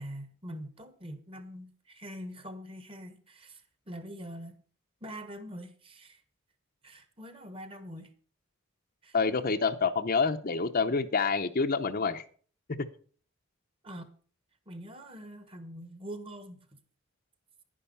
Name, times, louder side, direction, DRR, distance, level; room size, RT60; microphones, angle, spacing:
voice 1, 0.0-4.6 5.0-6.2 6.8-8.1 9.0-9.2 13.8-14.1 14.7-16.8, equal, 25° right, 1.4 m, -44 dB
voice 2, 9.1-12.2, left 4 dB, 45° left, 0.7 m, -27 dB
11.0 x 10.0 x 5.5 m
head